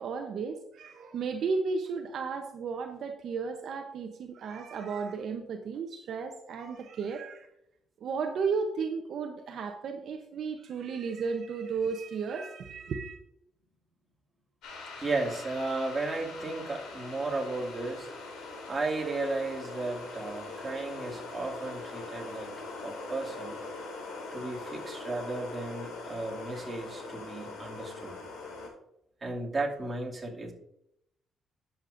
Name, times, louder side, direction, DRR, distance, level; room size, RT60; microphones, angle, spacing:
voice 1, 0.0-7.5 8.0-13.2, right 5 dB, 65° right, 5 dB, 0.8 m, -34 dB
sound 1, 14.6-28.7, left 3 dB, 85° left, 3.4 m, -42 dB
voice 2, 15.0-18.1 18.7-22.5 22.8-23.5 24.3-28.1 29.2-30.5, right 2 dB, 25° right, -2 dB, 2.4 m, -34 dB
11.0 x 7.2 x 2.6 m, 0.77 s
cardioid pair, 90°, 0 cm